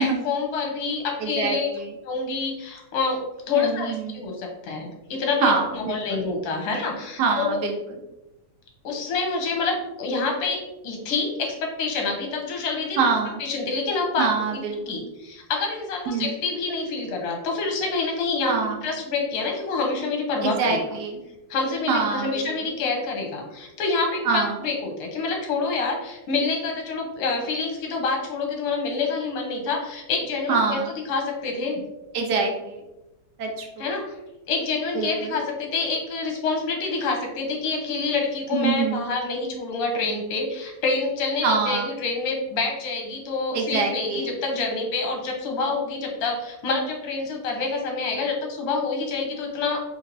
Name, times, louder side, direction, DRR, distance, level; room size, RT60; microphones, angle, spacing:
voice 1, 0.0-1.7 2.0-3.2 3.5-7.6 8.8-13.1 13.4-14.3 14.9-20.8 21.5-30.8 31.1-31.8 33.8-34.2 34.5-49.8, left 4 dB, 85° left, 2 dB, 1.8 m, -27 dB
voice 2, 1.2-1.9 3.5-4.2 5.4-6.2 7.2-7.7 13.0-13.4 14.2-15.0 16.1-16.3 18.5-18.8 20.4-21.2 21.9-22.7 24.2-24.6 30.5-30.9 32.1-32.8 33.4-33.8 34.9-35.4 38.5-39.0 41.4-41.9 43.5-44.3, right 5 dB, 65° right, 2 dB, 1.1 m, -25 dB
4.4 x 3.1 x 2.6 m, 0.95 s
omnidirectional pair, 2.4 m